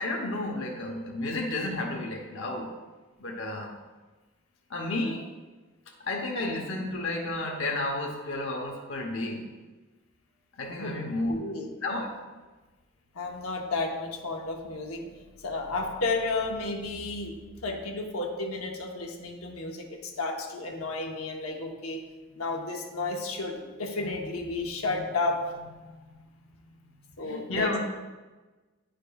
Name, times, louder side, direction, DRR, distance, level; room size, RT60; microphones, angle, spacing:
voice 1, 0.0-2.7 3.2-3.7 4.7-5.2 6.0-9.5 10.6-11.4 11.8-12.1 27.2-27.8, left 2 dB, 60° left, 0 dB, 0.8 m, -31 dB
voice 2, 11.3-11.7 13.1-15.1 15.4-22.0 22.3-26.0 27.2-27.7, left 3 dB, 85° left, 1 dB, 0.9 m, -32 dB
10.0 x 5.2 x 2.3 m, 1.2 s
head